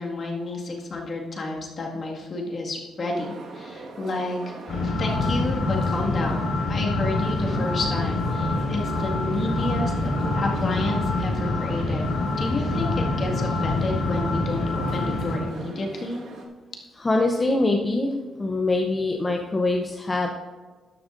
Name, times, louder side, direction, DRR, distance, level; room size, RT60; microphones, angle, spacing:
voice 1, 0.0-4.4 4.8-12.0 12.4-16.2, left 2 dB, 40° left, -1 dB, 1.9 m, -30 dB
sound 1, 3.2-16.5, right 3 dB, 70° right, 1.6 m, -41 dB
sound 2, 4.7-15.4, left 2 dB, 70° left, 3.4 m, -25 dB
voice 2, 17.0-18.1 18.4-20.3, left 2 dB, 20° left, 2 dB, 0.7 m, -23 dB
12.5 x 11.0 x 2.6 m, 1.4 s
cardioid pair, 155°, 0 cm